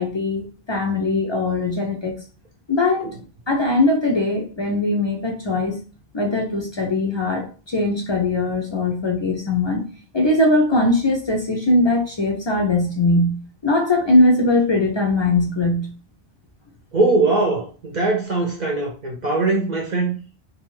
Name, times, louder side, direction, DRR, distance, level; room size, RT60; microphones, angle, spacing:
voice 1, 0.0-2.1 2.7-3.1 3.5-5.8 6.1-7.4 7.7-9.8 10.1-13.4 13.6-15.9, left 2 dB, 50° left, 0.3 m, -20 dB
voice 2, 16.9-20.2, right 3 dB, 55° right, 0.6 m, -21 dB
2.5 x 2.2 x 3.0 m
omnidirectional pair, 1.1 m